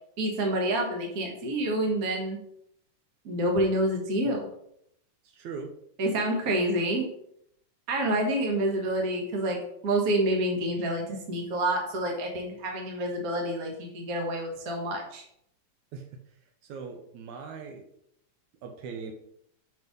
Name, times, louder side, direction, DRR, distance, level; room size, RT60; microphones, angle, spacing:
voice 1, 0.2-2.4 3.2-4.5 6.0-7.1 7.9-9.6 9.8-15.2, right 1 dB, 40° right, 1 dB, 1.5 m, -28 dB
voice 2, 5.2-5.7 15.9-16.1 16.6-17.9 18.6-19.1, right 5 dB, 75° right, 4 dB, 2.1 m, -40 dB
5.8 x 5.5 x 5.2 m, 0.73 s
omnidirectional pair, 3.5 m